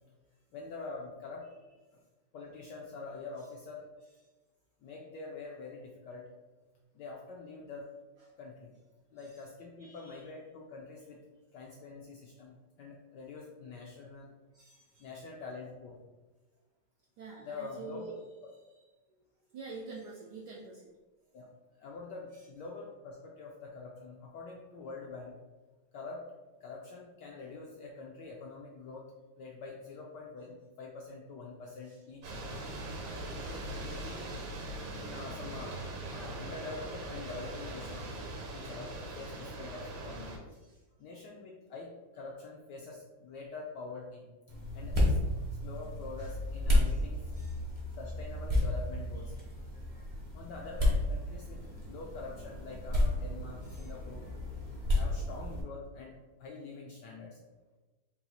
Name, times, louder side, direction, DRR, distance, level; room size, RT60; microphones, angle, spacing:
voice 1, 0.5-1.5 2.3-3.8 4.8-6.2 6.9-7.9 8.4-8.7 9.1-11.2 11.5-14.3 15.0-16.0 17.3-18.1 21.3-21.5 21.7-25.3 25.9-26.2 26.6-29.1 29.4-32.5 33.4-34.3 34.9-38.1 38.5-40.4 41.0-45.2 45.6-47.3 48.0-49.3 49.7-49.8 50.1-54.2 54.9-57.4, left 4 dB, 80° left, -2 dB, 1.0 m, -45 dB
voice 2, 9.8-10.2 14.5-15.1 17.2-18.1 19.5-20.8 31.9-32.0 32.5-32.7 39.3-39.4 40.6-40.8 46.2-46.3 46.8-47.0 47.3-47.6 53.8-53.9, right 3 dB, 80° right, -1 dB, 0.9 m, -47 dB
sound 1, 32.2-40.4, right 2 dB, 65° right, 1.3 m, -41 dB
sound 2, 44.5-55.6, left 1 dB, 45° right, 0.4 m, -32 dB
4.1 x 2.4 x 4.0 m, 1.2 s
omnidirectional pair, 2.3 m